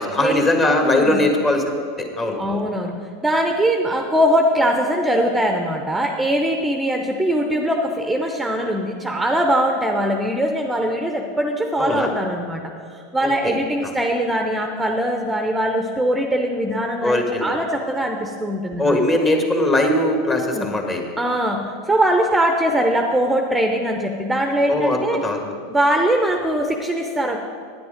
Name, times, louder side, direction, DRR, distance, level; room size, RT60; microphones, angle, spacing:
voice 1, 0.0-1.6 2.0-2.6 11.8-12.1 13.4-13.6 17.0-17.5 18.8-21.0 24.7-25.4, left 1 dB, 25° left, 3 dB, 1.7 m, -20 dB
voice 2, 0.8-1.2 2.4-2.9 3.2-12.6 12.9-19.0 20.5-20.7 21.2-25.2 25.7-27.4, right 1 dB, 5° right, 3 dB, 0.8 m, -21 dB
9.5 x 9.5 x 5.1 m, 2.2 s
figure-of-eight pair, 85°, 0 cm